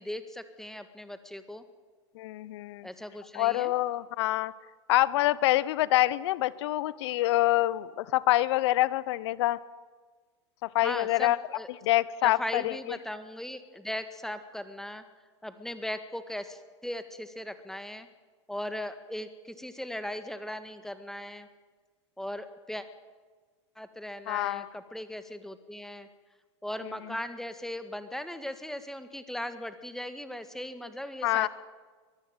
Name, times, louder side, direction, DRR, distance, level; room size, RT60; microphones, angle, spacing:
voice 1, 0.0-1.6 2.8-3.7 10.8-11.7 12.2-15.0 15.4-18.1 18.5-21.5 22.2-22.9 23.8-26.1 26.6-31.5, left 1 dB, 5° left, 10 dB, 1.8 m, -38 dB
voice 2, 2.1-2.9 3.3-4.5 4.9-9.6 10.6-11.4 11.8-12.7 24.3-24.7 31.2-31.5, left 16 dB, 70° left, 20 dB, 0.9 m, -26 dB
23.0 x 14.5 x 9.1 m, 1.4 s
hypercardioid pair, 95°, 15 cm